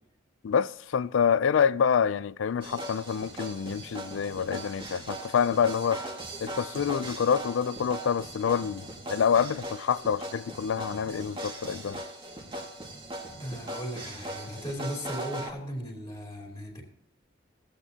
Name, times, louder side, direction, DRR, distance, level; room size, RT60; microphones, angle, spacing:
voice 1, 0.4-6.0 6.4-12.0, left 7 dB, 75° left, 0.4 m, -27 dB
sound 1, 2.6-15.5, right 1 dB, 25° right, 1.8 m, -39 dB
voice 2, 13.4-16.8, equal, 20° left, 2.9 m, -37 dB
16.5 x 8.7 x 2.8 m
head